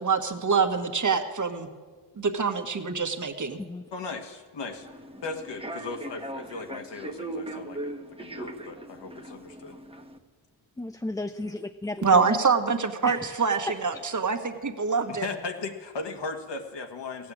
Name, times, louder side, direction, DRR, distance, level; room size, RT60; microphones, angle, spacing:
voice 1, 0.0-1.7 2.2-3.6 12.0-15.3, right 5 dB, 40° right, 6 dB, 1.6 m, -25 dB
voice 2, 3.9-4.9 5.2-9.8 15.1-17.3, left 3 dB, 60° left, 5 dB, 1.7 m, -37 dB
Human voice / Subway metro underground, 4.7-10.2, right 1 dB, 10° right, 1.3 m, -39 dB
voice 3, 10.8-12.4 13.0-13.4 13.7-14.0, left 2 dB, 10° left, 7 dB, 0.5 m, -34 dB
16.0 x 7.8 x 8.7 m, 1.5 s
supercardioid pair, 55°, 46 cm